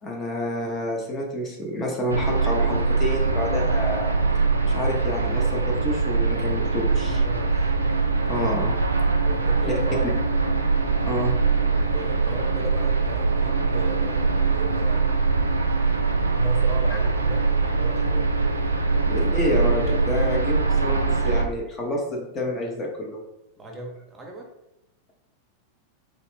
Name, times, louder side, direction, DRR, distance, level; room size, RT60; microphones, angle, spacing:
voice 1, 0.0-4.2 4.6-7.2 8.2-8.8 11.0-11.4 16.9-17.0 19.1-23.2, left 1 dB, 25° left, -1 dB, 0.8 m, -28 dB
sound 1, 2.1-21.5, right 4 dB, 80° right, 0.4 m, -22 dB
voice 2, 7.1-7.7 9.2-10.2 11.6-15.0 15.7-18.3 23.6-24.5, right 3 dB, 15° right, 0 dB, 0.9 m, -37 dB
3.4 x 3.0 x 3.1 m, 0.90 s
figure-of-eight pair, 90°, 0 cm